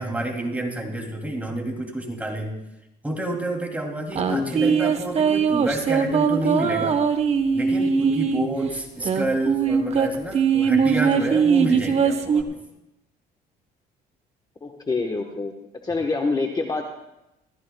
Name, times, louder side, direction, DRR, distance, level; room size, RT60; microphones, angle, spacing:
voice 1, 0.0-2.6 3.0-7.0 7.5-12.6, right 1 dB, 10° right, 1 dB, 2.7 m, -28 dB
sound 1, 4.1-8.5 9.0-12.4, right 6 dB, 40° right, 1.0 m, -21 dB
voice 2, 4.2-4.8 9.0-9.1 14.6-15.5 15.8-16.8, left 3 dB, 25° left, 3 dB, 1.1 m, -26 dB
24.5 x 14.5 x 2.3 m, 0.92 s
cardioid pair, 110°, 17 cm